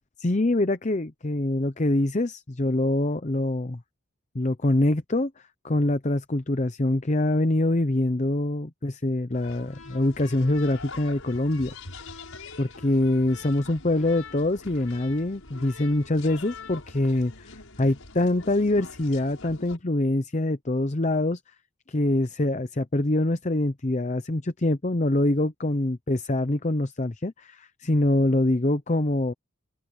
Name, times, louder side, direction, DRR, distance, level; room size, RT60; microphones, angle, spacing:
voice 1, 0.2-3.8 4.3-5.3 5.6-11.7 12.6-17.5 17.8-21.4 21.9-29.3, left 1 dB, 35° left, 0.7 m, -24 dB
sound 1, 9.3-19.8, left 3 dB, 90° left, 7.3 m, -44 dB
open air
head